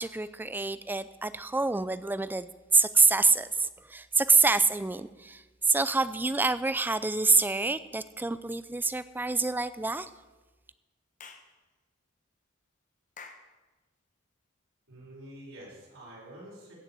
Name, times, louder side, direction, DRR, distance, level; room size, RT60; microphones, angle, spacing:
voice 1, 0.0-2.5 2.7-10.1, right 3 dB, 10° right, 14 dB, 0.4 m, -26 dB
Clapping / Chirp tweet, 11.2-11.5 13.2-13.5, left 5 dB, 40° left, 1.1 m, -47 dB
voice 2, 14.9-16.7, right 1 dB, 75° right, -5 dB, 5.7 m, -47 dB
15.5 x 6.6 x 7.6 m, 1.2 s
head